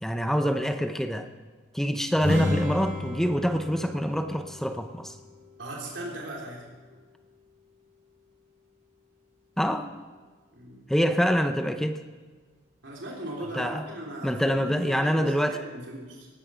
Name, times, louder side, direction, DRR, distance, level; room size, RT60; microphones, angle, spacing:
voice 1, 0.0-1.3 1.7-5.2 9.6-9.9 10.9-12.0 13.6-13.9 14.2-15.6, equal, ahead, 7 dB, 0.7 m, -26 dB
sound 1, 2.1-5.9, left 1 dB, 45° right, 3.5 m, -32 dB
voice 2, 5.6-6.7 10.5-10.9 12.8-16.3, right 1 dB, 90° right, -3 dB, 3.4 m, -38 dB
18.5 x 11.0 x 5.7 m, 1.4 s
head